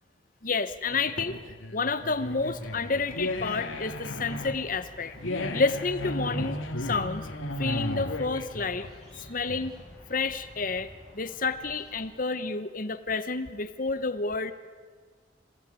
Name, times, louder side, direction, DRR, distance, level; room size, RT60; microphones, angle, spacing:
voice 1, 0.4-1.4 1.7-5.1 5.5-7.3 7.6-8.9 9.3-9.7 10.1-14.5, left 4 dB, 45° left, 12 dB, 1.0 m, -30 dB
sound 1, 0.9-9.9, left 1 dB, 80° left, 2.5 m, -34 dB
sound 2, 2.0-12.0, equal, ahead, 7.4 m, -50 dB
26.5 x 17.0 x 9.7 m, 1.5 s
head